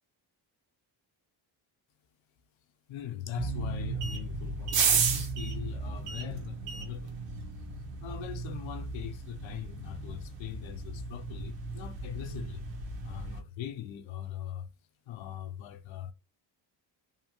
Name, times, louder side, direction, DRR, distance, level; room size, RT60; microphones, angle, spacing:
voice 1, 2.9-7.2 8.0-12.7 13.0-14.7 15.1-16.1, left 11 dB, 70° left, 0.6 m, -41 dB
sound 1, 3.4-13.4, right 5 dB, 65° right, 0.8 m, -34 dB
2.7 x 2.1 x 2.9 m
cardioid pair, 120°, 48 cm